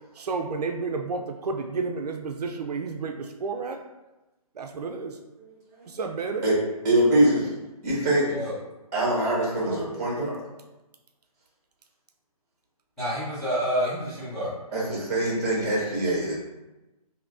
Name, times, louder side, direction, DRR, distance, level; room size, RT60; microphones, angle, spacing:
voice 1, 0.2-3.8 4.6-5.2 5.9-6.5, right 4 dB, 85° right, 4 dB, 0.4 m, -31 dB
voice 2, 6.8-7.5 7.8-8.3 8.9-10.4 14.7-16.3, right 1 dB, 30° right, -5 dB, 1.4 m, -23 dB
voice 3, 13.0-14.5, equal, ahead, -17 dB, 0.9 m, -28 dB
3.6 x 2.7 x 2.4 m, 1.0 s
hypercardioid pair, 165°, 20 cm